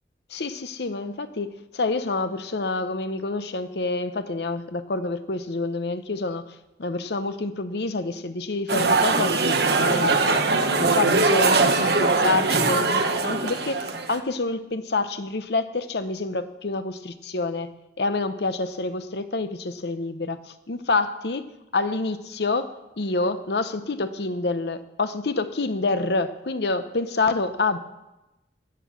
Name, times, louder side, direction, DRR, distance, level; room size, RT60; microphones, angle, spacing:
voice 1, 0.3-6.4 6.8-10.4 10.8-13.8 14.1-17.7 18.0-21.4 21.7-27.8, left 3 dB, 70° left, 11 dB, 0.8 m, -27 dB
sound 1, 8.7-14.2, right 3 dB, 65° right, 1.1 m, -21 dB
13.5 x 8.5 x 7.0 m, 0.99 s
head